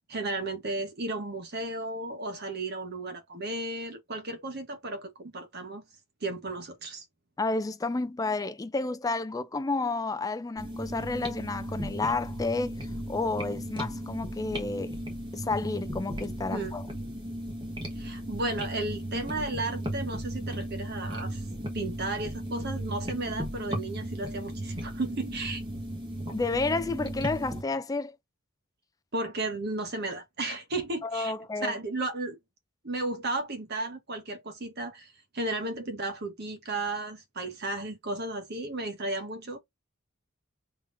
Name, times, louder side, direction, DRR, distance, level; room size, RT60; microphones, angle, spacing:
voice 1, 0.1-5.8 6.2-7.0 16.5-16.8 17.9-21.4 21.7-25.6 29.1-31.3 31.6-32.4 32.8-39.6, right 2 dB, 50° right, 1.1 m, -34 dB
voice 2, 7.4-12.8 13.1-15.0 15.3-16.8 26.3-28.2 31.0-31.7, left 3 dB, 15° left, 0.3 m, -31 dB
sound 1, 10.6-27.6, right 1 dB, 20° right, 1.2 m, -36 dB
3.7 x 2.9 x 2.6 m
head